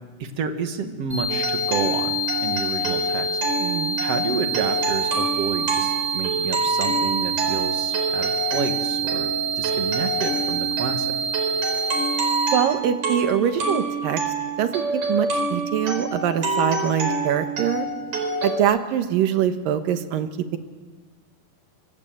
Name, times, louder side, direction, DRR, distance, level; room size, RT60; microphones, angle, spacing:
voice 1, 0.2-3.4 4.0-11.2, right 5 dB, 50° right, 6 dB, 2.7 m, -30 dB
sound 1, 1.1-12.5, right 3 dB, 5° right, 5.6 m, -27 dB
sound 2, 1.3-18.6, right 2 dB, 70° right, 5.7 m, -27 dB
voice 2, 3.6-4.0 12.5-14.2 14.6-17.9 18.4-20.6, right 10 dB, 90° right, 9 dB, 3.0 m, -23 dB
25.0 x 24.5 x 7.9 m, 1.3 s
omnidirectional pair, 3.8 m